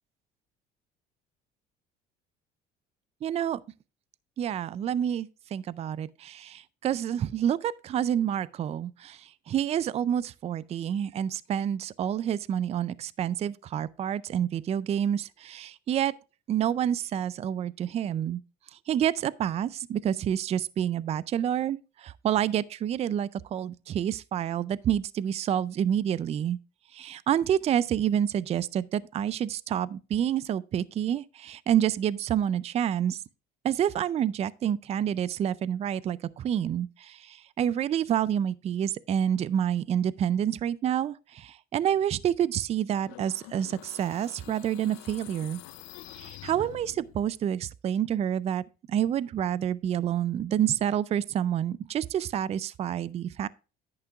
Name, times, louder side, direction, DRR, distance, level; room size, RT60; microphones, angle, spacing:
voice 1, 3.2-3.6 4.4-16.1 16.5-18.4 18.7-26.6 26.9-33.2 33.6-45.6 46.1-53.5, right 10 dB, 35° right, 0.4 m, -28 dB
sound 1, 43.0-47.3, left 17 dB, 80° left, 0.5 m, -47 dB
10.5 x 8.6 x 2.4 m
cardioid pair, 110°, 20 cm